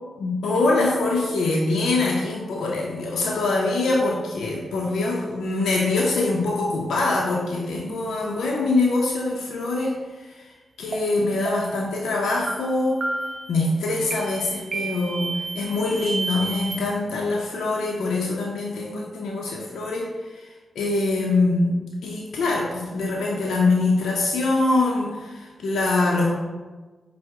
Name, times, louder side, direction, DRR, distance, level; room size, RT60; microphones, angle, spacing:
voice 1, 0.2-13.0 13.5-21.7 22.0-26.4, left 2 dB, 80° left, -3 dB, 0.5 m, -24 dB
sound 1, 10.9-11.0 11.4-11.8 12.5-12.6 13.0-13.5 14.1-14.2 14.7-15.3, right 2 dB, 60° right, 0.6 m, -30 dB
sound 2, 13.1-13.6 14.1-16.8, right 4 dB, ahead, 1.1 m, -34 dB
4.5 x 2.0 x 3.4 m, 1.3 s
supercardioid pair, 45°, 0 cm